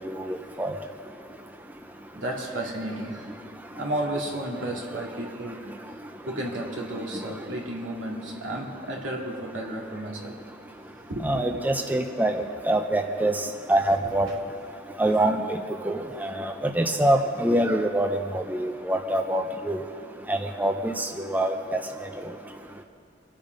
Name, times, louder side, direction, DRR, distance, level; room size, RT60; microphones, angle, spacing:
voice 1, 0.3-0.7 11.2-13.3 13.7-14.3 15.0-15.4 15.8-19.8 20.3-21.5, right 1 dB, 10° right, 5 dB, 0.6 m, -25 dB
voice 2, 2.1-3.4 3.8-5.8 6.3-10.7 11.1-11.3 14.3-14.4, right 1 dB, 80° right, -1 dB, 2.6 m, -33 dB
24.5 x 8.9 x 5.3 m, 2.3 s
head